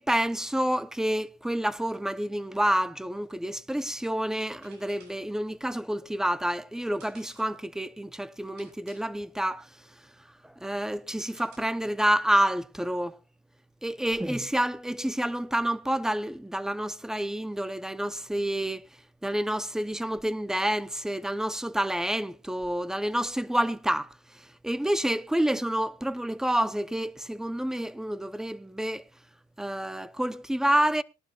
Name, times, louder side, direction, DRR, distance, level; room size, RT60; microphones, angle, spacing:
voice 1, 0.0-9.7 10.4-13.2 13.8-18.8 19.2-24.1 24.6-29.0 29.6-31.0, right 1 dB, 5° right, 0.7 m, -28 dB
sound 1, 4.6-12.0, right 4 dB, 80° right, 7.7 m, -59 dB
20.5 x 11.5 x 2.4 m
cardioid pair, 110°, 17 cm